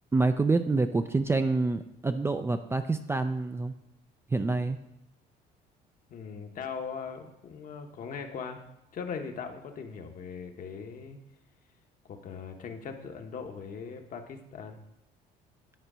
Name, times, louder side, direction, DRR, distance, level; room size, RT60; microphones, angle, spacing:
voice 1, 0.1-3.7 4.3-4.8, right 3 dB, 15° right, 8 dB, 0.4 m, -27 dB
voice 2, 6.1-8.7 8.9-11.2 12.1-14.8, left 6 dB, 55° left, 5 dB, 1.0 m, -40 dB
9.7 x 4.5 x 5.0 m, 0.85 s
cardioid pair, 110°, 17 cm